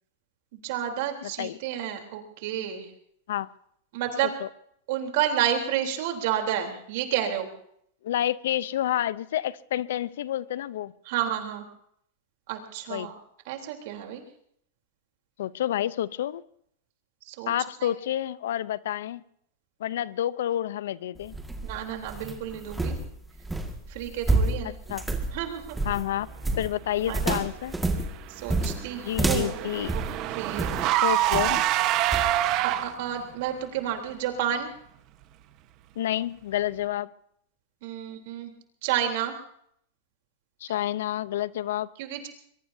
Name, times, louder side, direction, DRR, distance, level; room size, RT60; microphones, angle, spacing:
voice 1, 0.6-2.9 3.9-4.3 4.9-7.5 11.1-11.6 12.5-13.1 13.5-14.2 17.3-17.5 17.8-17.9 21.6-23.0 23.9-24.7 25.3-25.8 27.1-27.4 28.3-30.0 30.4-30.7 32.6-34.7 37.8-38.5 38.8-39.3 42.0-42.3, right 10 dB, 60° right, 3 dB, 3.6 m, -30 dB
voice 2, 1.2-1.6 3.3-3.5 4.4-4.5 8.0-10.9 12.9-13.1 15.4-16.4 17.5-19.2 19.8-21.3 24.9-25.1 25.8-26.3 26.6-27.7 29.0-30.0 31.0-31.6 36.0-37.1 40.6-41.9, left 12 dB, 80° left, 18 dB, 0.7 m, -29 dB
sound 1, 21.2-30.9 31.3-31.7 32.1-32.3, right 2 dB, 5° right, 1.9 m, -29 dB
Car / Engine, 28.1-33.2, right 14 dB, 45° right, 1.2 m, -26 dB
23.5 x 22.5 x 2.8 m, 0.68 s
supercardioid pair, 135°, 0 cm